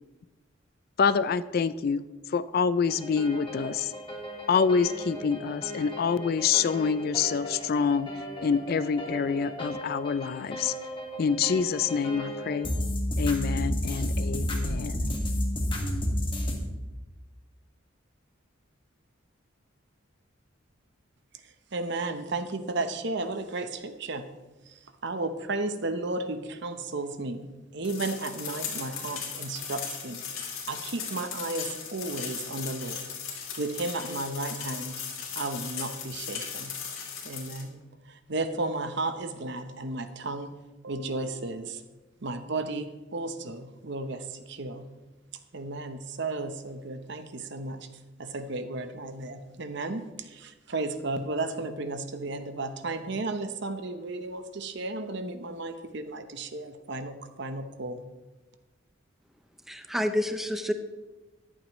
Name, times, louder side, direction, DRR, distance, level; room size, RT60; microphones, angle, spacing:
voice 1, 1.0-2.0 2.3-3.9 4.5-8.1 8.4-10.7 11.2-12.7 13.2-15.0, left 6 dB, 50° left, 16 dB, 0.3 m, -26 dB
sound 1, 2.9-16.6, left 1 dB, 25° left, 1.5 m, -33 dB
voice 2, 21.7-24.3 25.0-30.2 30.7-33.1 33.6-35.0 35.4-36.8 37.2-37.8 38.1-40.6 40.8-41.8 42.2-44.9 45.5-47.9 48.2-58.0, right 2 dB, 60° right, 9 dB, 0.9 m, -34 dB
sound 2, 27.8-37.6, left 6 dB, 90° left, 2.7 m, -37 dB
voice 3, 59.7-60.7, left 1 dB, ahead, 7 dB, 0.5 m, -28 dB
14.0 x 11.0 x 3.1 m, 1.2 s
head